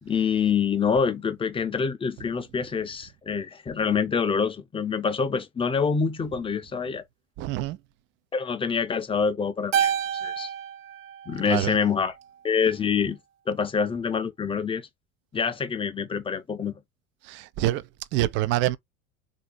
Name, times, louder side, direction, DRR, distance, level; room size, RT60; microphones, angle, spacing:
voice 1, 0.0-7.0 8.3-9.9 10.2-10.5 11.3-12.1 12.4-13.2 13.5-14.9 15.3-16.8, left 6 dB, 15° left, 0.7 m, -26 dB
voice 2, 7.4-7.8 11.5-11.8 17.2-18.8, right 15 dB, 30° right, 0.4 m, -26 dB
Keyboard (musical), 9.7-12.2, right 9 dB, 55° right, 1.0 m, -29 dB
4.0 x 2.7 x 3.9 m
figure-of-eight pair, 75°, 41 cm